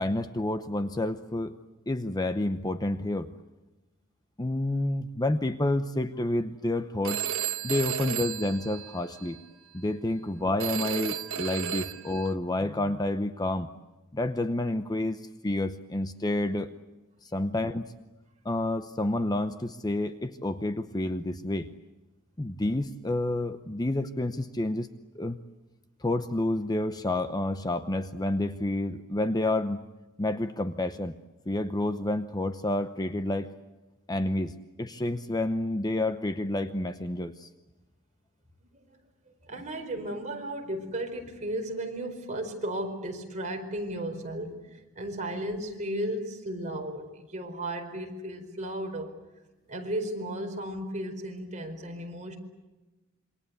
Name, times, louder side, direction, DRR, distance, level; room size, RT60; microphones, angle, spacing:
voice 1, 0.0-1.6 1.9-3.3 4.4-7.2 7.6-9.4 9.7-13.7 14.1-16.7 17.2-17.9 18.4-21.7 22.4-24.9 25.1-25.4 26.0-29.8 30.2-31.2 31.5-33.5 34.1-37.5, left 1 dB, 20° left, 10 dB, 0.8 m, -29 dB
Telephone, 7.0-9.4 10.6-12.3, right 9 dB, 65° right, 1.4 m, -33 dB
voice 2, 39.5-49.1 49.7-52.4, right 1 dB, 35° right, 2 dB, 4.6 m, -35 dB
27.5 x 24.0 x 8.2 m, 1.1 s
head